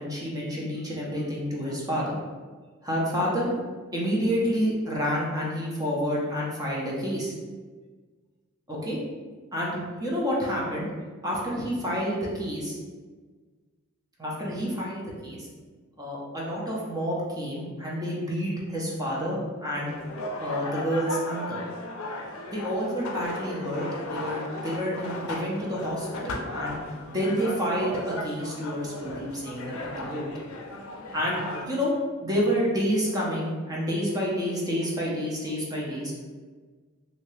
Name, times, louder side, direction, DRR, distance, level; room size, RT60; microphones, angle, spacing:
voice 1, 0.0-2.2 2.8-3.5 3.9-7.3 8.7-9.0 9.5-10.9 11.2-12.8 14.2-15.5 16.0-19.9 20.4-21.6 22.5-26.8 27.1-30.3 31.1-31.9 32.2-36.1, equal, 20° right, -4 dB, 0.7 m, -29 dB
sound 1, 19.9-31.7, left 2 dB, 85° left, 0.4 m, -36 dB
2.8 x 2.7 x 3.2 m, 1.4 s
head